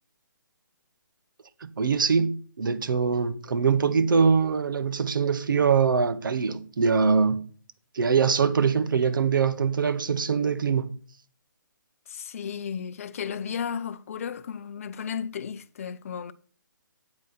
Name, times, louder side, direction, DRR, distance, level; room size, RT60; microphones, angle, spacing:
voice 1, 1.6-7.4 7.9-10.9, right 5 dB, 75° right, 1.1 m, -23 dB
voice 2, 12.1-16.3, left 7 dB, 40° left, 0.6 m, -34 dB
8.7 x 8.6 x 4.3 m
hypercardioid pair, 165°, 11 cm